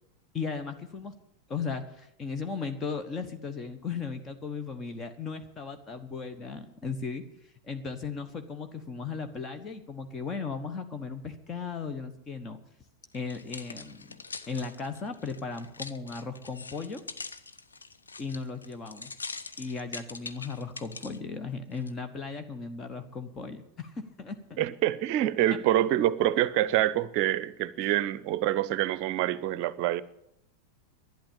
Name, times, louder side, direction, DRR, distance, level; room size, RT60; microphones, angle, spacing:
voice 1, 0.3-1.1 1.5-7.2 7.6-12.6 13.1-17.0 18.2-19.1 19.6-24.6 25.5-25.6 27.8-27.9, left 5 dB, 25° left, 1.1 m, -36 dB
sound 1, 13.1-21.2 21.8-21.9, left 4 dB, 75° left, 0.7 m, -43 dB
voice 2, 24.6-30.0, right 13 dB, 45° right, 0.7 m, -26 dB
11.5 x 10.5 x 8.6 m
figure-of-eight pair, 90°, 0 cm